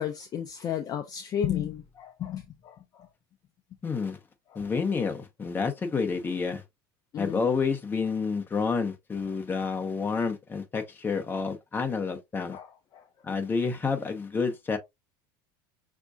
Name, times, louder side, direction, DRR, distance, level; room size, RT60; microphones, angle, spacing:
voice 1, 0.0-3.1 4.5-4.8 7.1-7.5 12.5-13.1, left 9 dB, 35° left, 0.5 m, -33 dB
voice 2, 3.8-4.2 4.5-6.6 7.2-12.6 13.2-14.8, left 5 dB, 20° left, 0.9 m, -29 dB
5.9 x 2.7 x 2.4 m
supercardioid pair, 125°, 12 cm